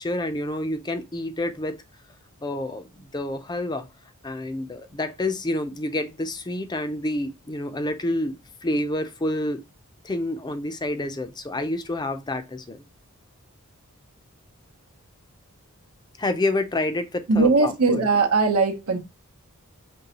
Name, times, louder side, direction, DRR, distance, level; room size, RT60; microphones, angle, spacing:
voice 1, 0.0-1.8 2.4-3.9 4.2-8.3 8.6-9.6 10.0-12.8 16.2-18.0, left 1 dB, 20° left, 0.5 m, -28 dB
voice 2, 17.3-19.0, right 3 dB, 80° right, 0.8 m, -20 dB
5.3 x 3.2 x 2.8 m
head